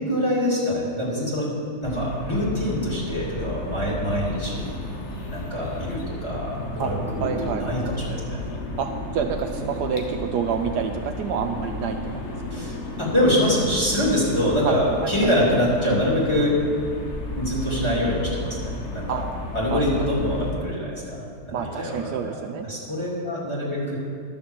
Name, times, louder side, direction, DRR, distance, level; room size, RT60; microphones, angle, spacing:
voice 1, 0.1-1.5 1.8-4.7 5.3-8.4 12.5-16.6 17.3-19.2 19.5-22.2 22.7-24.0, equal, 15° left, -6 dB, 2.9 m, -24 dB
sound 1, 1.8-20.5, left 2 dB, 45° left, 1.2 m, -33 dB
voice 2, 7.2-7.7 8.8-12.0 12.6-12.7 14.6-14.7 15.0-15.3 19.1-19.2 19.7-20.1 21.5-22.7, right 7 dB, 75° right, 5 dB, 1.1 m, -28 dB
12.0 x 6.7 x 7.2 m, 2.4 s
omnidirectional pair, 1.9 m